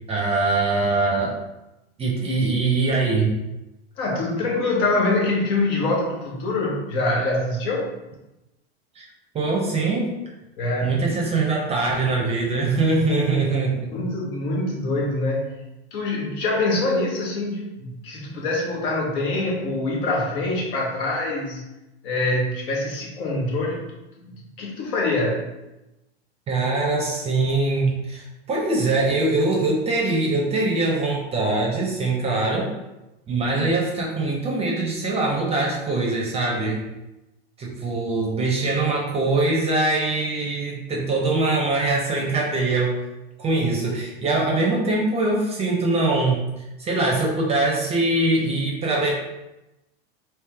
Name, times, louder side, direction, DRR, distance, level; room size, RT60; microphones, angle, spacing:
voice 1, 0.1-1.4 2.0-3.4 9.0-9.1 9.3-10.0 10.8-13.9 26.5-32.7 33.3-36.8 37.6-42.9 43.4-46.4 46.8-49.1, right 3 dB, 20° right, -1 dB, 0.7 m, -22 dB
voice 2, 4.0-7.9 10.6-11.0 13.9-15.6 15.9-21.6 22.0-23.8 24.2-25.5, left 2 dB, 60° left, -2 dB, 1.2 m, -24 dB
3.2 x 3.0 x 3.4 m, 0.98 s
supercardioid pair, 125°, 32 cm